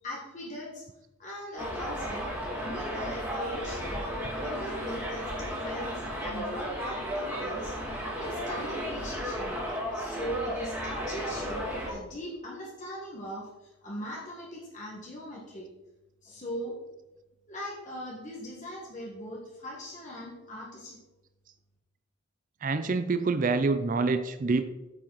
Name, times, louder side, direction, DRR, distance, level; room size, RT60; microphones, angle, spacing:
voice 1, 0.0-0.8 1.2-2.3 2.6-4.0 4.4-7.7 8.2-9.6 9.9-15.7 16.2-16.8 17.5-21.0, equal, 35° left, -4 dB, 1.6 m, -40 dB
Subway metro underground, 1.6-11.9, equal, 10° right, 2.5 m, -34 dB
voice 2, 22.6-24.6, right 3 dB, 40° right, 10 dB, 0.4 m, -26 dB
8.7 x 7.5 x 4.0 m, 1.0 s
head